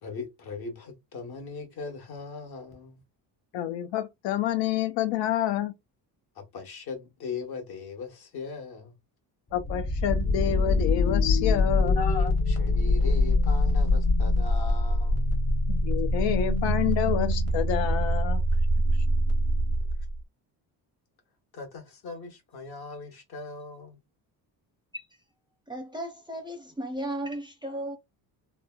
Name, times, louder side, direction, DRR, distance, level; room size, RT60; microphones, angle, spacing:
voice 1, 0.0-3.0 6.3-8.9 11.9-15.3 21.5-24.0, left 5 dB, 60° left, 1.1 m, -39 dB
voice 2, 3.5-5.7 9.5-12.0 15.7-18.4, left 12 dB, 85° left, 0.5 m, -28 dB
sound 1, 9.5-20.2, left 1 dB, 35° left, 0.9 m, -24 dB
voice 3, 25.7-28.0, right 1 dB, 10° right, 0.4 m, -35 dB
3.1 x 2.1 x 2.2 m
cardioid pair, 120°, 43 cm